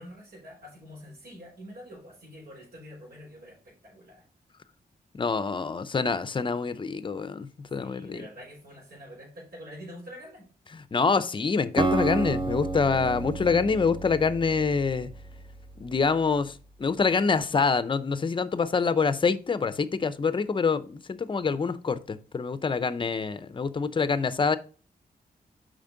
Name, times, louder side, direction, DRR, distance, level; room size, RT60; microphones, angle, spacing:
voice 1, 0.0-4.2 7.8-10.5, equal, 70° right, 4.0 m, -46 dB
voice 2, 5.1-8.3 10.7-15.1 15.8-16.5 16.8-24.6, left 5 dB, 30° left, 0.5 m, -26 dB
Acoustic guitar, 11.8-15.9, right 3 dB, 30° right, 0.7 m, -31 dB
7.2 x 5.1 x 3.8 m
wide cardioid pair, 140°, 16 cm